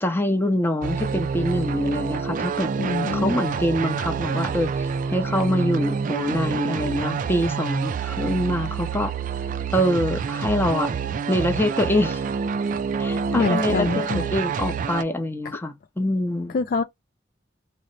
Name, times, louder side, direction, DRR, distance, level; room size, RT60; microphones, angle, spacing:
voice 1, 0.0-2.7 3.1-9.1 9.7-10.9 11.3-12.2 13.0-16.5, left 1 dB, 10° left, 0.6 m, -25 dB
sound 1, 0.8-15.0, right 6 dB, 45° right, 0.3 m, -27 dB
voice 2, 2.8-3.4 13.3-14.2 15.4-15.6 16.5-16.8, left 4 dB, 45° left, 0.3 m, -25 dB
3.0 x 2.1 x 3.8 m
head